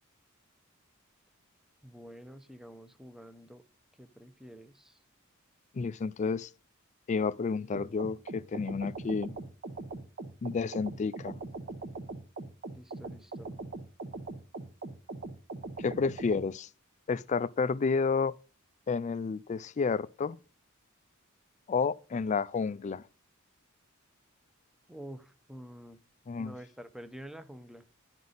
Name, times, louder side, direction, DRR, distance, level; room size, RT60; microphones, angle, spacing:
voice 1, 1.8-3.6 4.0-5.0 12.7-13.5 24.9-26.0 26.4-27.9, equal, ahead, 0.7 m, -48 dB
voice 2, 5.7-6.5 7.1-9.4 10.4-11.4 15.8-16.7 17.1-18.4 18.9-20.4 21.7-23.0 26.3-26.5, left 5 dB, 35° left, 0.3 m, -30 dB
sound 1, 7.7-16.5, right 3 dB, 45° right, 0.9 m, -41 dB
11.5 x 5.3 x 3.9 m
head